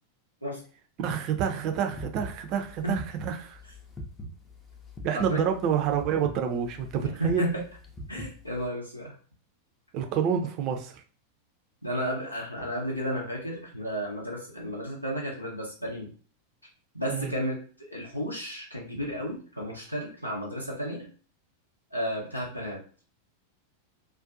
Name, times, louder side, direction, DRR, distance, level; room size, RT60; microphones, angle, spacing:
voice 1, 1.0-3.6 5.0-7.5 9.9-11.0 17.1-17.3, right 8 dB, 40° right, 5 dB, 0.4 m, -28 dB
sound 1, 1.9-8.7, left 1 dB, 15° left, 0.5 m, -41 dB
voice 2, 5.1-5.5 7.0-7.6 8.1-9.1 11.8-16.1 16.9-21.1 21.9-22.8, equal, 90° left, -3 dB, 0.7 m, -33 dB
2.5 x 2.2 x 2.5 m, 0.40 s
figure-of-eight pair, 90°, 0 cm